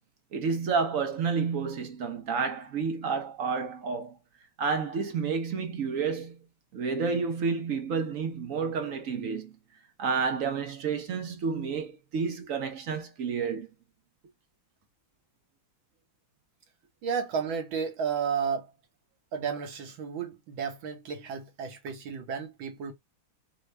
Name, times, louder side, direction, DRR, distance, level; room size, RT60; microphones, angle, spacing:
voice 1, 0.3-4.2 4.6-6.4 6.7-9.5 10.0-13.7, right 5 dB, 55° right, 0.9 m, -30 dB
voice 2, 17.0-18.7 19.3-22.9, right 6 dB, 75° right, 1.8 m, -32 dB
4.8 x 2.4 x 3.2 m
omnidirectional pair, 2.2 m